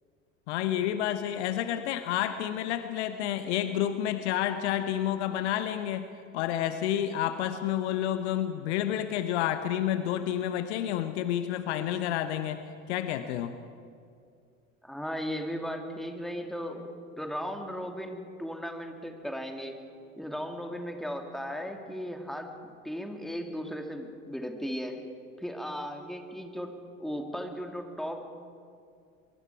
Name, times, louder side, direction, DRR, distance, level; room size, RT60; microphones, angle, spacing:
voice 1, 0.5-6.1 6.3-12.6 12.9-13.5, left 11 dB, 55° left, 10 dB, 1.1 m, -29 dB
voice 2, 14.8-19.8 20.2-25.0 25.4-26.7 27.0-28.4, equal, ahead, 4 dB, 2.5 m, -36 dB
23.5 x 23.5 x 4.8 m, 2.3 s
figure-of-eight pair, 75°, 39 cm